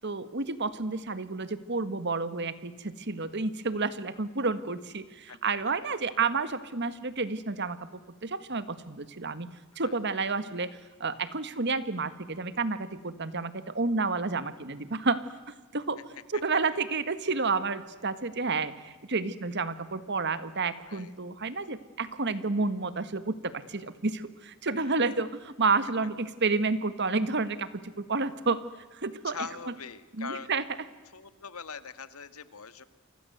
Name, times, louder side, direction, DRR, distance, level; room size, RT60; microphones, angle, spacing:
voice 1, 0.0-7.8 8.2-9.5 9.7-15.2 15.7-16.0 16.3-28.6 28.9-29.4 30.2-30.6, right 4 dB, 55° right, 13 dB, 1.7 m, -30 dB
voice 2, 24.8-25.2 29.2-30.5 31.1-32.8, left 5 dB, 85° left, 12 dB, 1.7 m, -42 dB
30.0 x 24.5 x 8.0 m, 1.3 s
head